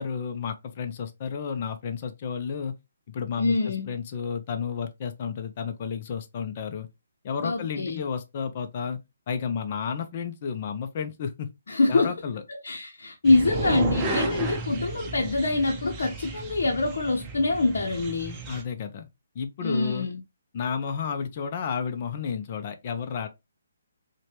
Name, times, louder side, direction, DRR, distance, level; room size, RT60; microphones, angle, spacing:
voice 1, 0.0-2.7 3.1-6.9 7.2-9.0 9.3-11.5 11.9-12.4 18.5-19.1 19.3-20.1 20.5-23.3, left 6 dB, 35° left, 0.5 m, -32 dB
voice 2, 3.4-3.9 7.4-8.0 11.7-12.1 12.6-18.4 19.6-20.2, left 3 dB, 70° left, 0.7 m, -25 dB
sound 1, 13.2-18.6, right 3 dB, 15° right, 0.6 m, -33 dB
4.6 x 2.2 x 2.9 m
hypercardioid pair, 155°, 0 cm